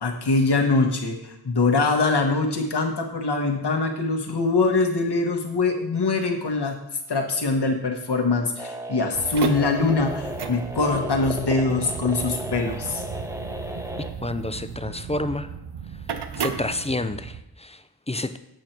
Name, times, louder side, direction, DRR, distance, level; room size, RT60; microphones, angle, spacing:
voice 1, 0.0-6.8 7.1-13.0, left 3 dB, 75° left, 3 dB, 1.4 m, -23 dB
sound 1, 8.6-14.1, equal, 5° right, 0.9 m, -34 dB
sound 2, 9.1-17.4, right 7 dB, 85° right, 0.7 m, -34 dB
voice 2, 14.2-15.5 16.4-18.4, left 2 dB, 15° left, 11 dB, 0.5 m, -29 dB
8.0 x 6.6 x 4.5 m, 0.84 s
wide cardioid pair, 55°, 40 cm